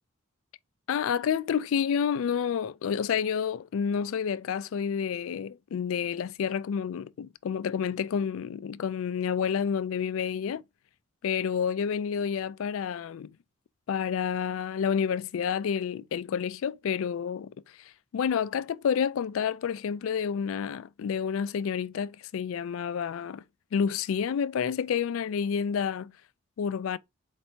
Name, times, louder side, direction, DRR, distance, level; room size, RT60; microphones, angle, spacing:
voice 1, 0.9-10.6 11.2-13.4 13.9-23.4 23.7-26.1 26.6-27.0, left 7 dB, 70° left, 0.3 m, -29 dB
4.3 x 2.8 x 4.2 m
head